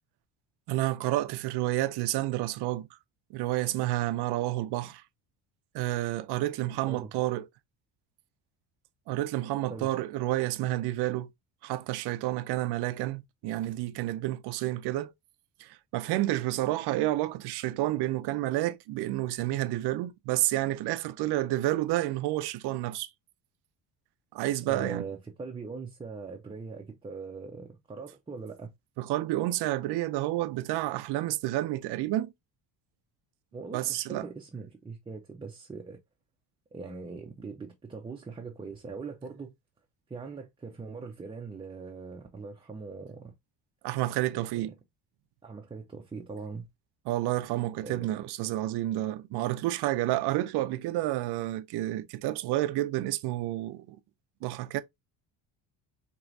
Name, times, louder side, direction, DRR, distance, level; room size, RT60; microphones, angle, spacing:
voice 1, 0.7-2.9 3.3-5.0 5.7-7.5 9.1-11.3 11.6-15.1 15.6-23.1 24.3-25.0 29.0-32.3 33.7-34.3 43.8-44.7 47.1-54.0 54.4-54.8, right 15 dB, 65° right, 0.6 m, -30 dB
voice 2, 24.7-28.7 33.5-36.0 36.7-39.5 40.1-43.3 44.3-44.7 45.4-46.7 47.8-48.2, right 4 dB, 10° right, 0.6 m, -41 dB
4.6 x 3.0 x 2.6 m
cardioid pair, 120°, 43 cm